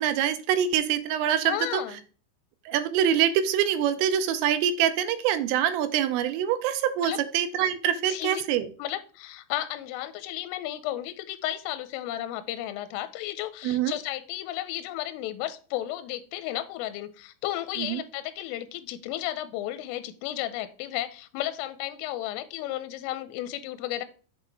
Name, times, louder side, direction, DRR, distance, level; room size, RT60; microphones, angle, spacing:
voice 1, 0.0-1.8 2.7-8.7 13.6-13.9 17.8-18.0, right 10 dB, 85° right, 10 dB, 3.2 m, -25 dB
voice 2, 1.4-2.0 7.0-7.2 8.1-8.4 8.8-24.1, left 14 dB, 85° left, 12 dB, 3.2 m, -33 dB
7.5 x 4.1 x 4.5 m, 0.38 s
omnidirectional pair, 5.8 m